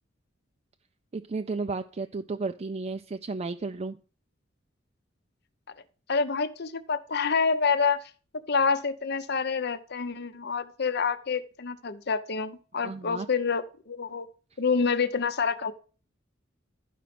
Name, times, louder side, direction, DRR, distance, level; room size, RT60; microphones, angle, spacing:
voice 1, 1.1-4.0 12.7-13.3, right 3 dB, 30° right, 7 dB, 0.4 m, -33 dB
voice 2, 6.1-8.0 8.5-14.3 14.6-15.7, left 5 dB, 55° left, 13 dB, 0.8 m, -27 dB
12.0 x 5.1 x 5.9 m, 0.38 s
head